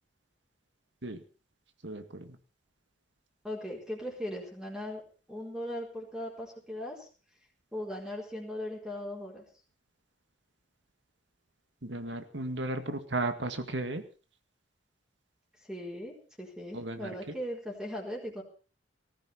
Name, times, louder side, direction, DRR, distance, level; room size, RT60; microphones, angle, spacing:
voice 1, 1.8-2.4 11.8-14.0 16.7-17.3, right 2 dB, 80° right, 8 dB, 2.0 m, -35 dB
voice 2, 3.4-5.0 5.3-7.1 7.7-9.4 15.7-18.4, left 1 dB, 5° right, -3 dB, 4.4 m, -38 dB
19.5 x 14.0 x 4.4 m, 0.36 s
head